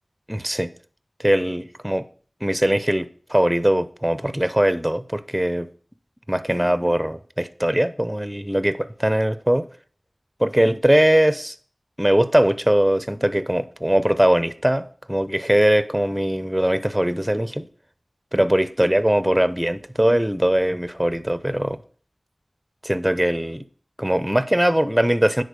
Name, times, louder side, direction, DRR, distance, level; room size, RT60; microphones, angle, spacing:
voice 1, 0.3-0.7 1.2-2.0 2.4-5.7 6.3-9.7 10.4-11.5 12.0-17.7 18.3-21.8 22.8-23.6 24.0-25.4, right 1 dB, 10° right, 0.7 m, -21 dB
10.0 x 4.0 x 6.7 m
wide cardioid pair, 50°, 0 cm